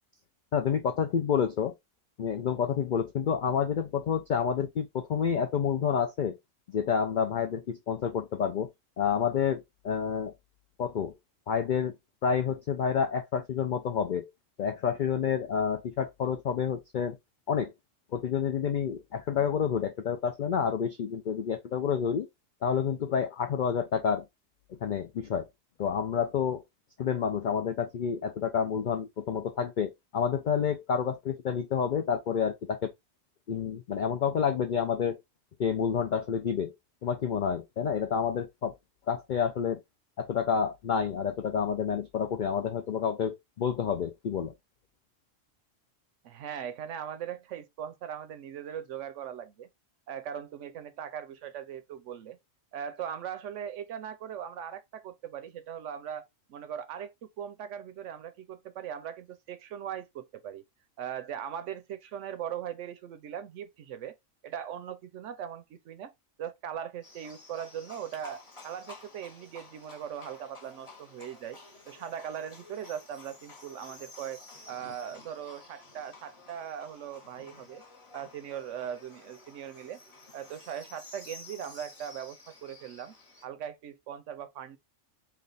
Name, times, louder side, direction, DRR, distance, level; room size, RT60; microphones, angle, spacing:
voice 1, 0.5-1.7 2.2-6.4 6.7-8.7 9.0-10.3 10.8-11.1 11.5-11.9 12.2-14.3 14.6-17.2 17.5-17.7 18.1-22.3 22.6-24.2 24.8-25.5 25.8-26.6 27.0-32.9 33.5-35.2 35.6-36.7 37.0-38.7 39.1-39.8 40.2-44.5, left 7 dB, 70° left, 0.4 m, -29 dB
voice 2, 46.2-49.7 50.1-52.4 52.7-56.2 56.5-60.6 61.0-64.2 64.4-66.1 66.4-71.6 71.9-74.4 74.7-77.8 78.1-80.0 80.3-83.1 83.4-84.8, right 9 dB, 75° right, 0.9 m, -39 dB
Livestock farm animals working animals, 67.0-83.5, left 3 dB, 25° left, 1.0 m, -52 dB
3.3 x 2.4 x 3.8 m
omnidirectional pair, 1.3 m